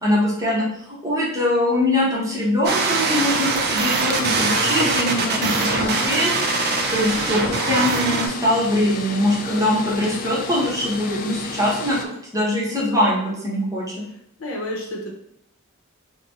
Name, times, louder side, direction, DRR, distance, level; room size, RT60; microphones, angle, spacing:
voice 1, 0.0-0.6 1.0-6.3 6.9-12.0 12.3-13.8, left 1 dB, 15° right, -6 dB, 1.0 m, -22 dB
sound 1, 2.6-8.3, right 4 dB, 50° right, 0.4 m, -22 dB
sound 2, 4.1-12.1, left 4 dB, 45° left, 0.3 m, -32 dB
voice 2, 7.2-7.6 12.6-13.0 14.4-15.1, left 2 dB, 70° left, -1 dB, 0.8 m, -31 dB
3.9 x 2.2 x 2.9 m, 0.73 s
head